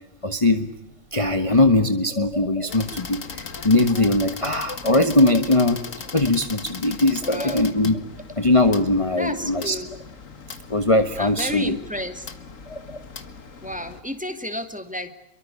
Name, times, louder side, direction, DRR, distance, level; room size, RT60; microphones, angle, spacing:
voice 1, 0.2-0.7 1.1-5.8 6.1-7.9 8.4-9.7 10.7-11.8 12.7-13.0, left 2 dB, 25° left, 8 dB, 1.5 m, -20 dB
sound 1, 2.7-14.0, left 5 dB, 65° left, 2.1 m, -39 dB
voice 2, 7.2-7.7 9.2-9.9 11.2-12.3 13.6-15.1, equal, 5° right, 8 dB, 2.4 m, -31 dB
29.0 x 23.5 x 8.4 m, 0.83 s
omnidirectional pair, 1.5 m